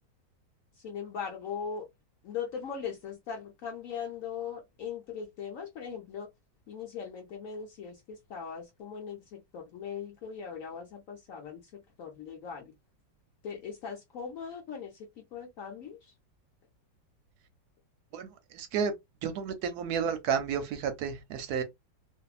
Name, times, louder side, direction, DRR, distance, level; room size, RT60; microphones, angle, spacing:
voice 1, 0.8-1.9 2.2-6.3 6.7-12.7 13.4-16.1, left 7 dB, 70° left, 0.8 m, -40 dB
voice 2, 18.5-18.9 19.2-21.6, right 7 dB, 70° right, 1.0 m, -31 dB
2.6 x 2.6 x 2.3 m
omnidirectional pair, 2.0 m